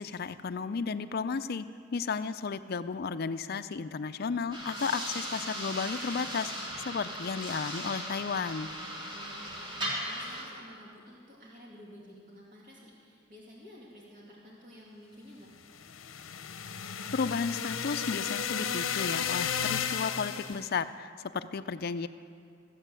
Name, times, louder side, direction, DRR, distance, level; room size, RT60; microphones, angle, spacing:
voice 1, 0.0-6.5 6.8-8.7 17.1-22.1, left 5 dB, 50° left, 11 dB, 0.4 m, -33 dB
sound 1, 4.5-10.4, equal, 25° right, 2.7 m, -37 dB
voice 2, 9.1-15.5, equal, 45° right, -5 dB, 2.4 m, -52 dB
sound 2, 15.7-20.7, left 7 dB, 80° left, 0.7 m, -33 dB
14.5 x 8.1 x 7.7 m, 2.4 s
head